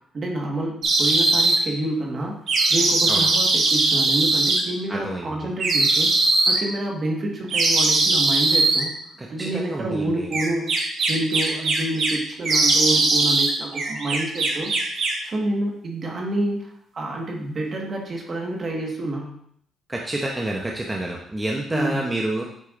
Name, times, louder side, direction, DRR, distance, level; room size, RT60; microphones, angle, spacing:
voice 1, 0.1-6.1 6.5-8.9 9.3-10.7 11.1-14.7 15.2-19.4 21.7-22.0, right 1 dB, 45° right, 0 dB, 1.5 m, -28 dB
sound 1, 0.8-1.6 2.5-4.6 5.6-6.6 7.5-8.8 10.3-12.2 12.4-13.5 13.8-15.2, right 2 dB, 60° right, 1.2 m, -20 dB
voice 2, 4.9-5.5 9.2-10.3 19.9-22.4, right 1 dB, 20° right, -1 dB, 0.8 m, -28 dB
8.4 x 4.5 x 2.5 m, 0.69 s
cardioid pair, 90°, 0 cm